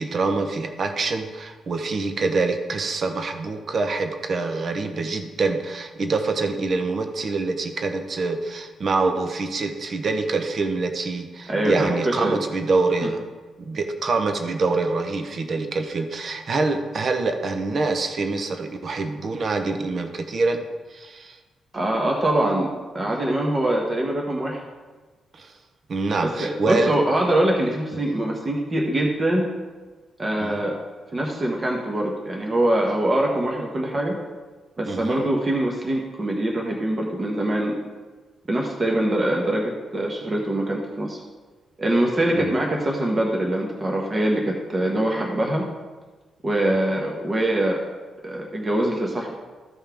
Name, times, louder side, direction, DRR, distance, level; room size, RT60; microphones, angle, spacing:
voice 1, 0.0-13.2 13.7-20.6 20.9-21.4 25.3-25.5 25.9-26.9 30.4-30.6 34.8-35.2 42.3-42.6, right 3 dB, 40° right, 6 dB, 0.7 m, -25 dB
voice 2, 11.5-12.4 21.7-22.7 22.9-24.6 26.2-29.5 30.2-30.7 31.1-34.1 34.8-37.8 38.5-41.2 41.8-45.6 46.4-47.8 48.2-49.3, right 1 dB, 25° right, -1 dB, 1.0 m, -23 dB
14.0 x 5.5 x 3.5 m, 1.3 s
wide cardioid pair, 170°, 0 cm